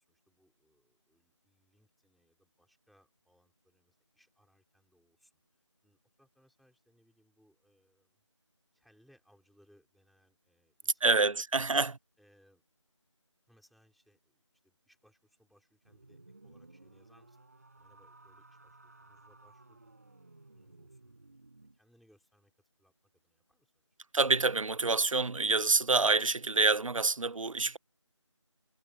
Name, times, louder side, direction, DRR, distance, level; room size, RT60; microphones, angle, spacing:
voice 1, 0.0-8.2 8.7-11.7 12.2-12.6 13.5-17.4 17.7-19.9 20.4-21.4 21.7-23.8, equal, ahead, 4.4 m, -69 dB
voice 2, 11.0-12.0 24.1-27.8, right 3 dB, 90° right, 0.6 m, -27 dB
sound 1, 15.8-21.8, right 2 dB, 30° right, 7.0 m, -57 dB
figure-of-eight pair, 180°, 16 cm